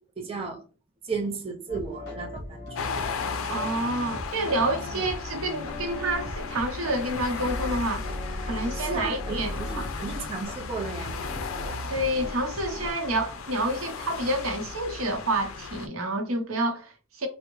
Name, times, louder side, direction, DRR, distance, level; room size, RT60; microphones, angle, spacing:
voice 1, 0.2-0.6 1.0-2.9 4.9-5.1 8.7-11.1, right 4 dB, 25° right, 0.5 m, -34 dB
sound 1, 1.7-10.5 11.1-12.9, left 1 dB, 50° left, 1.1 m, -38 dB
sound 2, 2.8-15.9, left 5 dB, 80° left, 0.4 m, -36 dB
voice 2, 3.5-8.1 8.4-9.5 11.9-17.3, right 1 dB, 85° right, 0.7 m, -28 dB
3.5 x 2.0 x 3.0 m
head